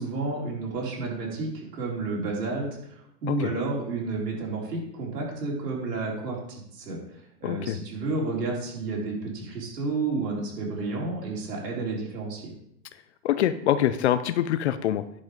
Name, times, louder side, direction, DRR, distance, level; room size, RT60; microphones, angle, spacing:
voice 1, 0.0-7.0 7.4-12.5, right 3 dB, 70° right, -3 dB, 4.6 m, -31 dB
voice 2, 7.4-7.8 13.2-15.0, left 11 dB, 45° left, 13 dB, 0.5 m, -24 dB
10.5 x 5.5 x 5.2 m, 0.73 s
hypercardioid pair, 135°, 50 cm